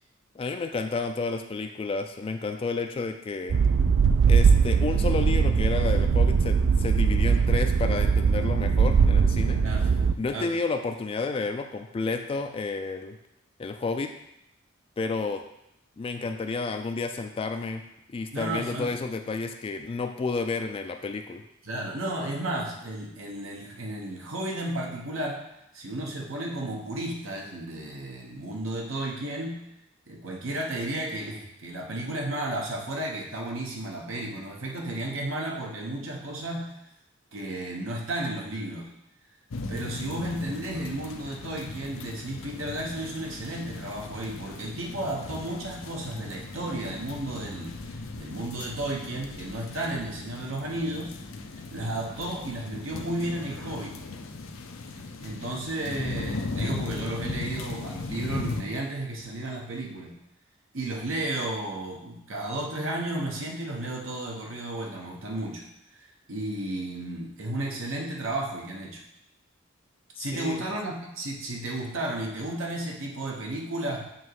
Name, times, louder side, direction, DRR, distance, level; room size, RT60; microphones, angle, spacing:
voice 1, 0.4-3.6 4.2-9.6 10.2-13.2 13.6-14.1 15.0-15.4 16.0-17.8 18.1-21.4 70.2-70.6, left 4 dB, 30° left, 6 dB, 0.3 m, -31 dB
sound 1, 3.5-10.1, right 5 dB, 65° right, 0.3 m, -21 dB
voice 2, 18.3-18.9 21.6-25.4 25.7-29.6 30.1-36.7 37.3-38.9 39.7-47.8 48.1-51.1 51.7-53.9 55.2-60.1 60.7-65.6 65.9-69.0 70.2-74.0, right 1 dB, 85° right, -1 dB, 1.2 m, -33 dB
sound 2, 39.5-58.6, left 3 dB, 85° left, 0.6 m, -37 dB
7.5 x 3.0 x 4.7 m, 0.83 s
head